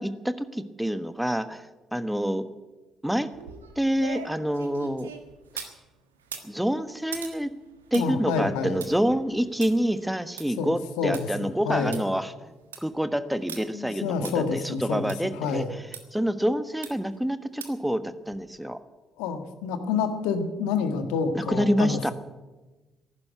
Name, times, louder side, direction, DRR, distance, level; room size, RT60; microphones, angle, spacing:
voice 1, 0.0-1.6 1.9-2.5 3.0-3.3 3.8-5.1 6.4-7.5 7.9-12.5 12.8-15.6 16.1-18.8 21.3-22.1, equal, 5° right, 11 dB, 1.3 m, -27 dB
sound 1, 3.3-5.8 6.2-11.2 11.6-11.7 11.9-12.0 12.5-12.9 13.5-13.6 14.2-14.3 15.1-15.2 15.9-16.0 16.8-17.1 17.6-17.9 18.3-18.4, right 7 dB, 90° right, 1.3 m, -41 dB
voice 2, 7.9-8.8 10.6-12.0 13.7-15.8 19.2-22.1, left 5 dB, 75° left, 7 dB, 1.6 m, -28 dB
15.0 x 11.5 x 8.2 m, 1.2 s
hypercardioid pair, 45°, 0 cm